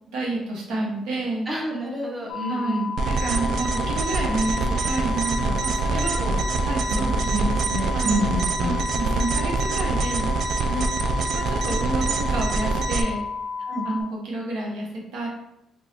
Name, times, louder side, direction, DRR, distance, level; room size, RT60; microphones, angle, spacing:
voice 1, 0.1-1.5 2.5-2.8 3.2-6.2 6.7-7.5 7.9-8.1 8.6-10.7 11.3-13.2 13.8-15.3, right 2 dB, 90° right, -2 dB, 0.9 m, -29 dB
voice 2, 1.5-2.9 5.4-5.5 5.9-6.4 6.9-8.8 10.6-10.8 13.7-13.8, equal, 20° right, -2 dB, 1.0 m, -29 dB
sound 1, 2.3-14.0, left 5 dB, 90° left, 0.4 m, -32 dB
sound 2, 3.0-13.0, right 3 dB, 65° right, 0.3 m, -25 dB
2.9 x 2.3 x 4.2 m, 0.81 s
cardioid pair, 90°, 0 cm